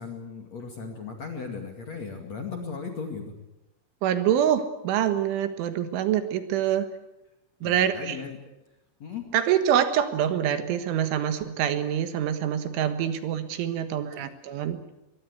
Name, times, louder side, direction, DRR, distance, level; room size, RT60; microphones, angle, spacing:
voice 1, 0.0-3.3 7.6-8.4 9.0-9.3, left 5 dB, 45° left, 3 dB, 2.6 m, -37 dB
voice 2, 4.0-6.9 7.6-8.2 9.3-14.8, right 10 dB, 75° right, 9 dB, 3.8 m, -25 dB
24.0 x 22.5 x 8.2 m, 0.94 s
omnidirectional pair, 5.8 m